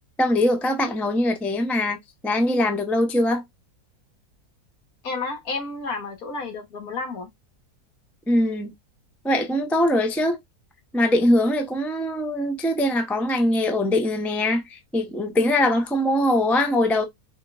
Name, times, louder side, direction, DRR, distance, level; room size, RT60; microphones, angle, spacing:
voice 1, 0.2-2.0 2.2-3.4 8.3-8.7 9.2-10.4 10.9-17.0, left 1 dB, ahead, 0.4 m, -22 dB
voice 2, 5.0-7.3, left 3 dB, 65° left, 1.8 m, -31 dB
5.0 x 3.7 x 2.4 m
omnidirectional pair, 1.7 m